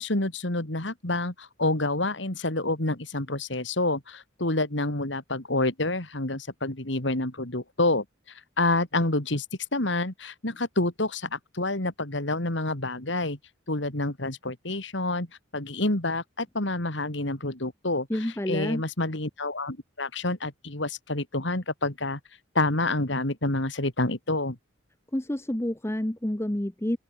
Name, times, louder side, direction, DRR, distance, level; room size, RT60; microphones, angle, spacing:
voice 1, 0.0-8.0 8.6-9.4 9.7-13.4 13.7-15.3 15.5-18.1 18.5-22.2 22.5-24.6, left 2 dB, 65° left, 3.1 m, -28 dB
voice 2, 18.1-18.8 25.1-27.0, left 1 dB, 15° left, 0.8 m, -29 dB
open air
head